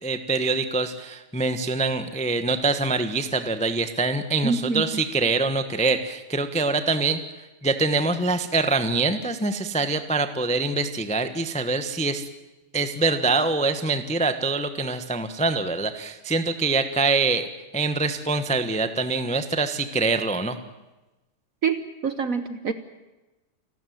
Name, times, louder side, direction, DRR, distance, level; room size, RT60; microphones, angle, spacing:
voice 1, 0.0-7.2 7.6-12.2 12.7-17.5 17.7-20.6, right 3 dB, 5° left, 9 dB, 0.6 m, -24 dB
voice 2, 4.4-5.0 21.6-22.7, right 5 dB, 50° right, 11 dB, 1.0 m, -26 dB
29.0 x 13.0 x 9.3 m, 1.1 s
omnidirectional pair, 2.4 m